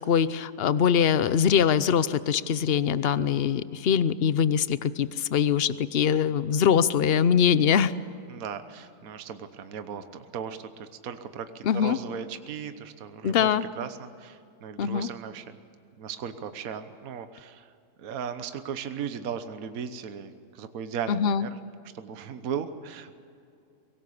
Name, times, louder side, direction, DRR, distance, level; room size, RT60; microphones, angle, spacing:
voice 1, 0.1-7.9 11.6-12.0 13.2-13.6 14.8-15.1 21.1-21.5, left 8 dB, 55° left, 15 dB, 0.7 m, -23 dB
voice 2, 8.3-15.5 16.0-17.7 18.0-21.6 21.9-23.1, right 7 dB, 60° right, 9 dB, 1.4 m, -37 dB
23.5 x 18.5 x 8.6 m, 2.5 s
omnidirectional pair, 1.8 m